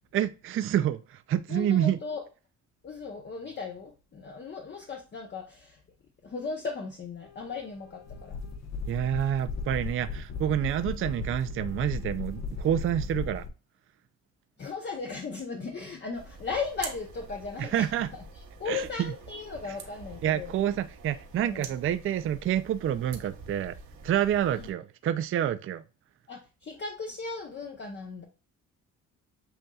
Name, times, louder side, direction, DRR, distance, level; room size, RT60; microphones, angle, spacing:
voice 1, 0.1-2.0 8.9-13.4 17.6-18.1 18.7-19.1 19.7-19.8 20.2-23.7 24.0-25.8, right 10 dB, 45° right, 0.4 m, -28 dB
voice 2, 1.5-2.2 2.8-5.8 6.2-8.4 10.8-11.0 14.6-18.2 18.6-20.5 21.4-21.6 24.5-24.7 26.3-28.3, left 4 dB, 35° left, 0.8 m, -37 dB
sound 1, 7.2-13.5, left 4 dB, 60° left, 1.1 m, -37 dB
sound 2, 16.1-24.7, right 4 dB, 70° right, 1.2 m, -46 dB
7.8 x 2.7 x 2.3 m
cardioid pair, 90°, 30 cm